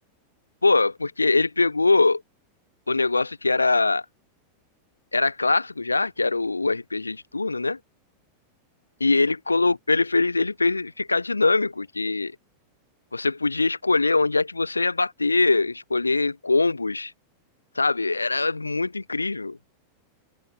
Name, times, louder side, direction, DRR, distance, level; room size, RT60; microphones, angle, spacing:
voice 1, 0.6-2.2 2.9-4.0 5.1-7.8 9.0-12.3 13.1-17.1 17.7-19.6, left 3 dB, 80° left, 1.3 m, -22 dB
figure-of-eight pair, 90°, 0 cm